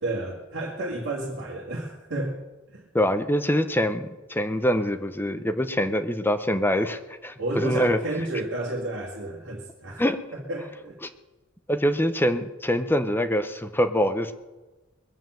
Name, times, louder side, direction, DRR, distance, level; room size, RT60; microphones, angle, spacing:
voice 1, 0.0-2.4 2.7-2.9 7.4-10.0 10.3-11.0, right 2 dB, 55° right, -2 dB, 2.1 m, -31 dB
voice 2, 2.9-8.0 10.0-10.2 11.7-14.3, equal, 10° left, 9 dB, 0.7 m, -24 dB
21.5 x 7.4 x 7.6 m, 1.1 s
head